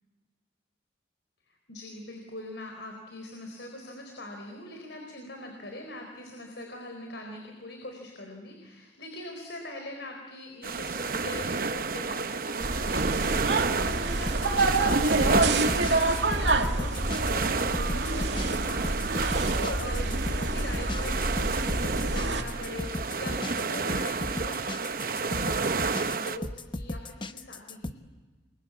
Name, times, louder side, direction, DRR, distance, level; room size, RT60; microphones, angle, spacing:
voice 1, 1.5-27.9, left 1 dB, 75° left, 3 dB, 4.3 m, -42 dB
sound 1, 10.6-26.4, right 4 dB, 50° right, 0.9 m, -31 dB
sound 2, 12.6-22.4, right 2 dB, 75° right, 2.2 m, -28 dB
sound 3, 14.1-27.9, left 2 dB, 25° left, 0.9 m, -36 dB
29.0 x 23.0 x 8.6 m, 1.3 s
head